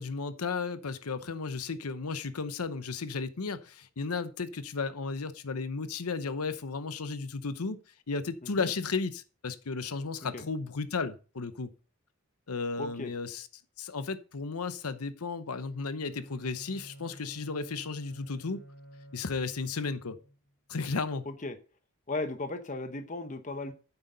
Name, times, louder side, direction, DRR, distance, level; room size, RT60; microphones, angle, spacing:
voice 1, 0.0-7.8 8.1-11.7 12.5-13.5 13.8-18.6 19.1-20.2 20.7-21.2, left 4 dB, 85° left, 0.8 m, -34 dB
voice 2, 12.8-13.1 21.2-21.6 22.1-23.7, left 2 dB, 35° left, 0.9 m, -36 dB
Bowed string instrument, 15.7-20.5, equal, 60° left, 3.4 m, -51 dB
9.8 x 7.9 x 3.9 m
head